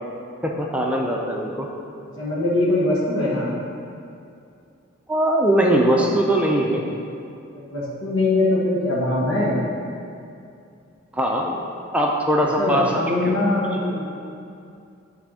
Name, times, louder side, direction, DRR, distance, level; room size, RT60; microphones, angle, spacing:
voice 1, 0.4-1.7 5.1-6.9 11.1-11.6 11.9-13.4 13.7-13.8, right 1 dB, 5° right, -1 dB, 0.5 m, -21 dB
voice 2, 2.2-3.5 7.5-9.6 12.6-14.0, left 2 dB, 75° left, -7 dB, 1.3 m, -22 dB
8.6 x 3.4 x 6.2 m, 2.5 s
head